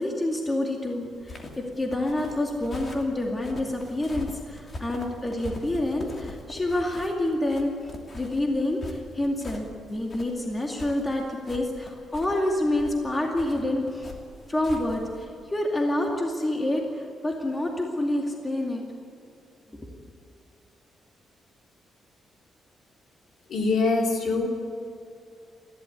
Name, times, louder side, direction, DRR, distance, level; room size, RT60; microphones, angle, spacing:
voice 1, 0.0-1.4 1.8-14.1 14.5-18.8 19.7-19.9, left 1 dB, 15° left, 0 dB, 2.3 m, -28 dB
sound 1, 1.2-15.2, left 2 dB, 30° left, 2.8 m, -42 dB
voice 2, 23.5-24.5, left 3 dB, 60° left, 1 dB, 3.8 m, -23 dB
21.0 x 15.5 x 9.7 m, 2.5 s
cardioid pair, 160°, 0 cm